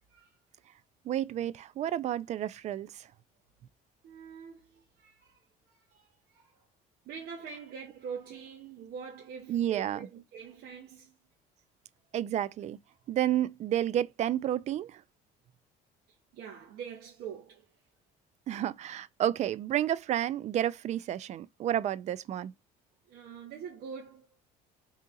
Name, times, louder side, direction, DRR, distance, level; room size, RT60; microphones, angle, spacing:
voice 1, 1.0-3.1 9.5-10.0 12.1-12.8 13.1-15.0 18.5-22.5, right 11 dB, 45° right, 0.4 m, -31 dB
voice 2, 4.0-5.4 5.9-6.6 7.0-11.2 16.3-17.7 23.1-24.3, right 6 dB, 70° right, 0.9 m, -44 dB
3.6 x 2.9 x 3.7 m
cardioid pair, 130°, 17 cm